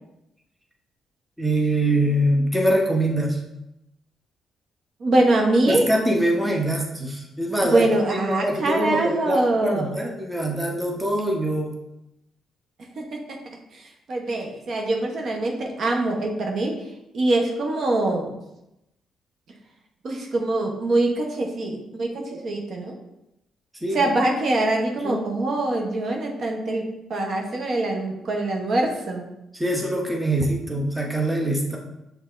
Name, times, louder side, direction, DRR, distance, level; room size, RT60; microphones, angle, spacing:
voice 1, 1.4-3.4 5.7-11.8 23.8-24.1 25.0-25.2 29.5-31.8, right 1 dB, 5° right, 0 dB, 0.8 m, -23 dB
voice 2, 5.0-5.9 7.7-9.9 13.0-13.4 13.7-16.8 17.1-18.4 20.0-23.0 23.9-26.8 27.1-29.3, right 2 dB, 55° right, 1 dB, 0.8 m, -23 dB
6.3 x 3.3 x 2.5 m, 0.88 s
cardioid pair, 90°, 0 cm